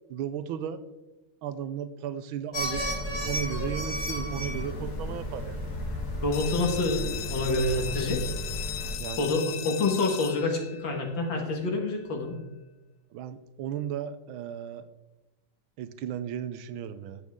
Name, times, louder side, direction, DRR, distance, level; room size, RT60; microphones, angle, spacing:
voice 1, 0.1-0.8 1.4-2.9 3.2-5.6 9.0-9.4 13.1-14.9 15.8-17.2, right 9 dB, 85° right, 12 dB, 1.5 m, -35 dB
sound 1, 2.5-9.0, equal, 50° left, 2.6 m, -33 dB
voice 2, 6.2-8.3 9.2-12.4, left 2 dB, 65° left, 2 dB, 2.3 m, -27 dB
sound 2, 6.3-11.8, left 11 dB, 85° left, 1.5 m, -38 dB
12.5 x 8.6 x 3.6 m, 1.0 s
omnidirectional pair, 2.2 m